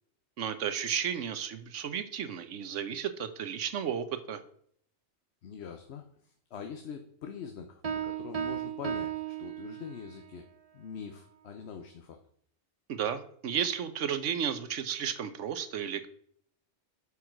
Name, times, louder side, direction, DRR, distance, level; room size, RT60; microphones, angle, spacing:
voice 1, 0.4-4.4 12.9-16.1, right 8 dB, 85° right, 11 dB, 1.1 m, -33 dB
voice 2, 5.4-10.5 10.7-12.2, left 6 dB, 65° left, 5 dB, 1.0 m, -44 dB
Piano, 7.8-10.2, right 8 dB, 35° right, 0.8 m, -35 dB
8.2 x 4.9 x 6.0 m, 0.63 s
omnidirectional pair, 1.2 m